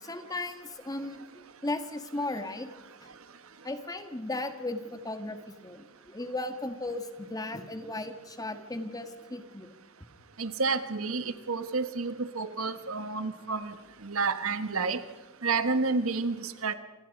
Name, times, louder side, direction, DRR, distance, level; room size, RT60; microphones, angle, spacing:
voice 1, 0.0-2.7 3.0-3.1 3.6-9.7, left 2 dB, 15° left, 7 dB, 1.7 m, -36 dB
voice 2, 10.4-13.7 14.0-15.0 15.4-16.7, right 4 dB, 70° right, 11 dB, 1.4 m, -30 dB
28.5 x 25.0 x 5.4 m, 1.3 s
head